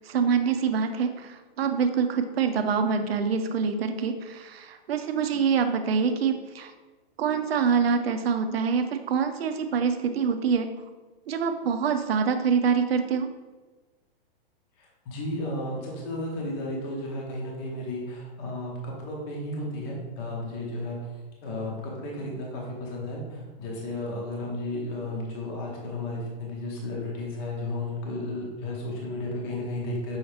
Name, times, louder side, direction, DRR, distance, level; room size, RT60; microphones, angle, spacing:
voice 1, 0.1-6.7 7.2-10.7 11.3-13.3, right 6 dB, 80° right, 8 dB, 0.6 m, -25 dB
voice 2, 14.8-21.0 21.4-30.2, left 1 dB, 25° left, -2 dB, 0.7 m, -33 dB
5.6 x 2.8 x 3.3 m, 1.2 s
hypercardioid pair, 165°, 30 cm